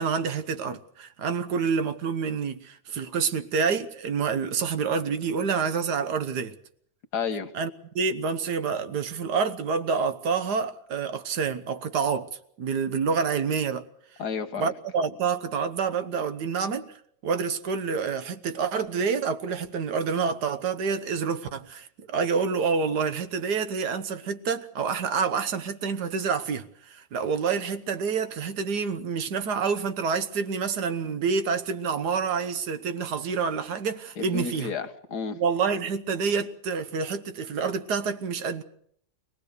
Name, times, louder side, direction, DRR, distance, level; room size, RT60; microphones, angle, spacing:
voice 1, 0.0-6.6 7.5-12.3 12.6-13.9 14.6-16.9 17.2-34.7 35.3-38.6, right 5 dB, 90° right, 1.7 m, -28 dB
voice 2, 7.1-7.5 14.2-14.7 34.2-35.4, left 6 dB, 90° left, 1.8 m, -31 dB
23.5 x 18.5 x 6.7 m
omnidirectional pair, 1.7 m